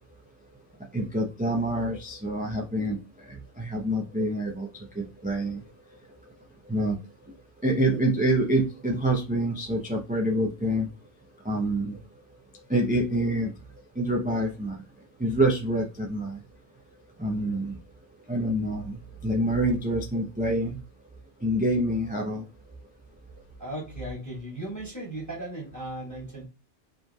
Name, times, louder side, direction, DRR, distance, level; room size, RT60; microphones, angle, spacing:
voice 1, 0.9-3.0 3.3-4.7 4.9-5.6 6.7-6.9 7.6-10.9 11.4-12.0 12.7-13.5 14.0-14.8 15.2-16.4 17.2-17.8 18.3-20.8 21.4-22.4, right 1 dB, 10° right, 0 dB, 0.5 m, -26 dB
voice 2, 23.6-26.4, right 1 dB, 15° left, -5 dB, 1.8 m, -36 dB
5.1 x 3.2 x 2.3 m, 0.29 s
omnidirectional pair, 1.2 m